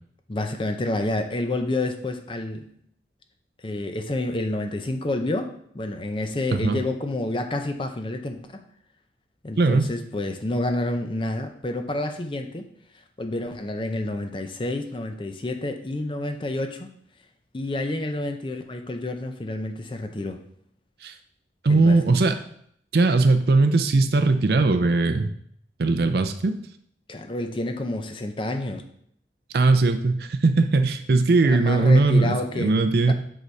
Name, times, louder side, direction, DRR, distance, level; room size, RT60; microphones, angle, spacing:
voice 1, 0.3-2.7 3.6-8.6 9.4-12.7 13.2-16.9 17.5-20.4 21.7-22.0 27.1-28.8 31.4-32.8 33.1-33.2, left 2 dB, 30° left, 6 dB, 0.5 m, -29 dB
voice 2, 6.5-6.8 9.6-9.9 21.0-21.1 21.6-22.4 22.9-25.3 25.8-26.6 29.5-33.1, right 3 dB, 60° right, 8 dB, 0.5 m, -19 dB
7.9 x 3.9 x 3.2 m, 0.67 s
head